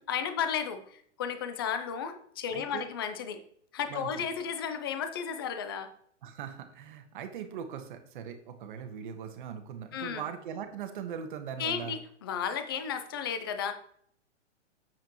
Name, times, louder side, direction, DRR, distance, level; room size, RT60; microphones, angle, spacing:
voice 1, 0.1-3.4 3.7-5.9 9.9-10.2 11.6-13.7, left 7 dB, 20° left, 8 dB, 0.4 m, -33 dB
voice 2, 2.5-2.8 3.9-4.3 6.2-12.0, right 8 dB, 45° right, 7 dB, 1.3 m, -40 dB
8.1 x 7.5 x 3.0 m, 0.63 s
hypercardioid pair, 165°, 36 cm